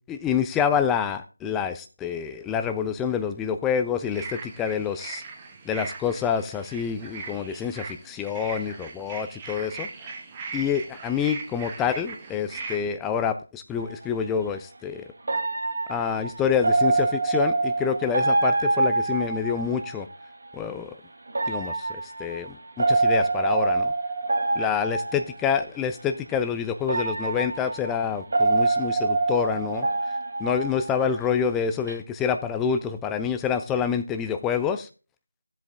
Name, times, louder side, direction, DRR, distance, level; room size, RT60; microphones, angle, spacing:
voice 1, 0.1-5.2 5.7-9.9 10.5-15.0 15.9-20.1 20.5-20.9 21.5-23.9 24.6-29.9 30.4-34.9, left 7 dB, 5° left, 9 dB, 0.4 m, -27 dB
sound 1, 3.9-12.8, right 4 dB, 15° right, 1.0 m, -39 dB
sound 2, 13.8-13.9 15.3-20.0 21.3-25.5 26.3-26.4 26.9-31.3 31.6-31.9, right 3 dB, 45° right, 3.3 m, -25 dB
15.0 x 7.8 x 3.5 m, 0.36 s
figure-of-eight pair, 165°, 0 cm